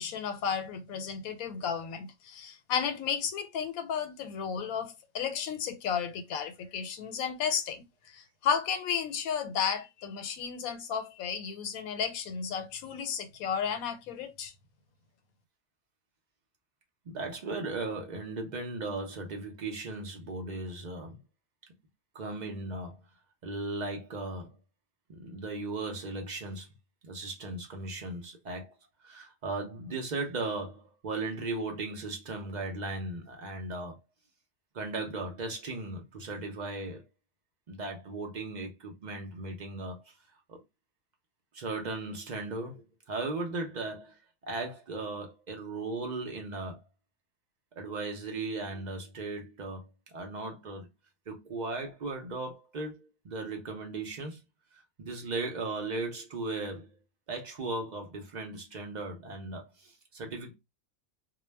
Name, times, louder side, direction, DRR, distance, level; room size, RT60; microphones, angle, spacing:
voice 1, 0.0-7.8 8.1-14.5, left 7 dB, 85° left, 1.0 m, -33 dB
voice 2, 17.1-21.2 22.1-23.0 23.4-24.5 25.1-26.7 27.0-28.7 29.0-34.0 34.7-37.0 37.7-40.0 40.5-40.6 41.5-44.2 44.5-46.8 47.8-50.9 51.3-54.4 55.0-56.9 57.3-60.5, right 3 dB, 60° right, 0.4 m, -37 dB
2.2 x 2.1 x 3.2 m
omnidirectional pair, 1.4 m